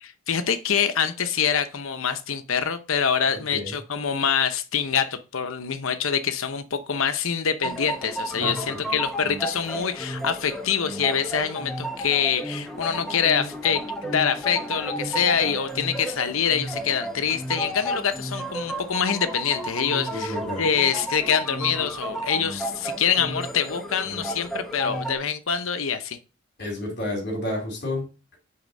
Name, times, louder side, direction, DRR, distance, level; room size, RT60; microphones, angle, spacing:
voice 1, 0.0-26.2, left 7 dB, 70° left, 0.8 m, -25 dB
voice 2, 3.3-3.7 8.4-8.8 20.1-20.7 26.6-28.1, left 1 dB, 50° left, 3.0 m, -30 dB
sound 1, 7.6-25.2, right 1 dB, ahead, 0.9 m, -32 dB
8.6 x 3.5 x 5.2 m
head